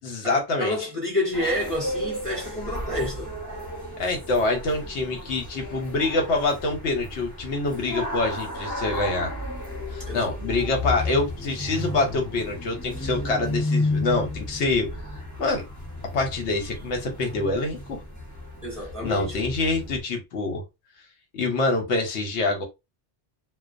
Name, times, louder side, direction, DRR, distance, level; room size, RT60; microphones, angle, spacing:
voice 1, 0.0-0.9 4.0-9.3 9.9-14.9 15.4-15.6 16.1-18.0 19.0-20.6 21.3-22.6, left 3 dB, 70° left, 1.0 m, -26 dB
voice 2, 0.6-3.3 10.1-10.2 18.6-19.3, left 1 dB, 30° right, 0.8 m, -28 dB
sound 1, 1.3-20.0, left 1 dB, 15° left, 0.8 m, -33 dB
2.4 x 2.2 x 2.4 m
omnidirectional pair, 1.3 m